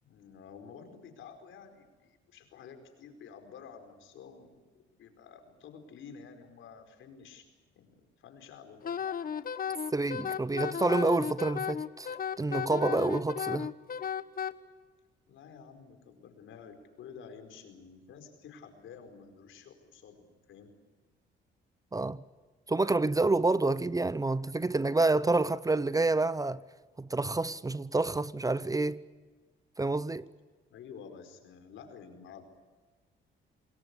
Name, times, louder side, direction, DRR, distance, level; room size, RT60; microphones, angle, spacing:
voice 1, 0.0-7.5 7.7-9.0 15.3-20.7 30.7-32.4, left 6 dB, 80° left, 4.8 m, -51 dB
Wind instrument woodwind instrument, 8.8-14.5, left 8 dB, 45° left, 1.3 m, -34 dB
voice 2, 9.9-13.7 21.9-22.2 22.7-26.6 27.0-29.0 29.8-30.2, right 3 dB, 15° right, 0.7 m, -28 dB
27.5 x 21.0 x 8.4 m
cardioid pair, 90°, 20 cm